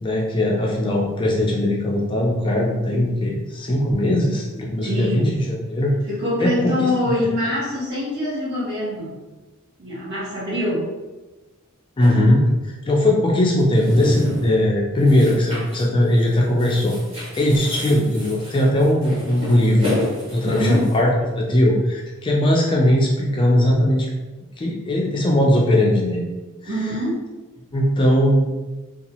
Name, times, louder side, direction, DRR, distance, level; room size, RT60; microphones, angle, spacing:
voice 1, 0.0-5.9 6.4-6.9 7.2-7.3 12.0-17.0 17.4-19.9 20.3-21.1 21.4-24.1 24.6-26.3 26.7-26.9 27.7-28.5, left 1 dB, 25° left, -2 dB, 0.3 m, -19 dB
voice 2, 4.8-5.3 6.1-9.2 9.8-10.9 20.4-20.9 26.7-27.2, left 1 dB, 55° right, -8 dB, 1.3 m, -24 dB
sound 1, 12.0-12.2 13.6-14.6 15.0-15.8 16.1-16.3 16.6-21.0, left 1 dB, 25° right, 1.1 m, -30 dB
2.7 x 2.3 x 2.9 m, 1.2 s
head